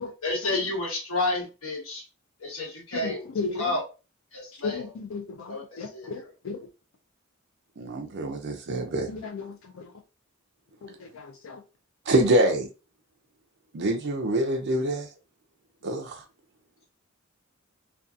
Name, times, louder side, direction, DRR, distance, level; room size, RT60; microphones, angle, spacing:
voice 1, 0.2-2.0 2.4-3.3 3.6-3.8 4.3-4.8 5.5-5.6 5.9-6.1, left 2 dB, 90° left, 1.2 m, -30 dB
voice 2, 2.9-3.8 4.5-6.7 9.1-9.9 10.8-11.6, left 4 dB, 70° left, 0.4 m, -36 dB
voice 3, 7.8-9.1 12.1-12.7 13.7-15.1 15.8-16.2, right 1 dB, 55° right, 0.4 m, -25 dB
2.6 x 2.3 x 2.4 m
head